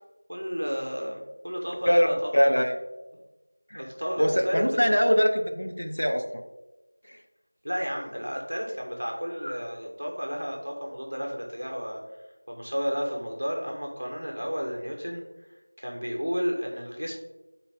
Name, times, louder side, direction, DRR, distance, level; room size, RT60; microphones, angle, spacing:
voice 1, 0.3-2.6 3.7-4.9 7.6-12.0 12.5-15.2 15.8-17.1, equal, 45° right, 0 dB, 1.2 m, -32 dB
voice 2, 2.3-2.7 3.7-3.8 4.2-6.2 7.1-7.2, equal, 50° left, 4 dB, 0.9 m, -22 dB
9.3 x 4.1 x 3.6 m, 1.1 s
figure-of-eight pair, 180°, 0 cm